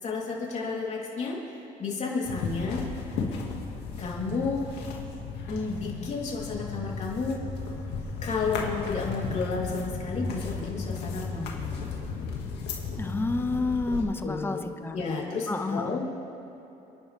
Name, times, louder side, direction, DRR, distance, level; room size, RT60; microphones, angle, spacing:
voice 1, 0.0-1.4 1.8-2.9 3.1-3.3 4.0-4.6 5.5-7.4 8.2-12.1 14.2-14.6 14.9-16.0, left 4 dB, 40° left, -3 dB, 3.7 m, -32 dB
sound 1, 2.2-14.1, left 5 dB, 80° left, 2.2 m, -35 dB
voice 2, 13.0-15.0 15.5-16.0, left 3 dB, 15° left, 7 dB, 0.9 m, -29 dB
29.0 x 11.0 x 3.6 m, 2.9 s
cardioid pair, 110°, 17 cm